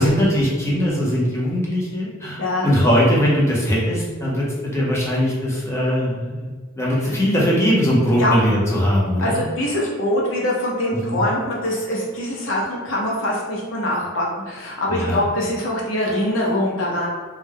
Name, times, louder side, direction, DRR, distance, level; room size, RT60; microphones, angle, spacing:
voice 1, 0.0-9.4 10.9-11.2 14.9-15.2, equal, 15° left, -5 dB, 0.7 m, -20 dB
voice 2, 9.2-17.1, left 1 dB, 75° left, -3 dB, 0.7 m, -23 dB
2.3 x 2.2 x 3.3 m, 1.4 s
head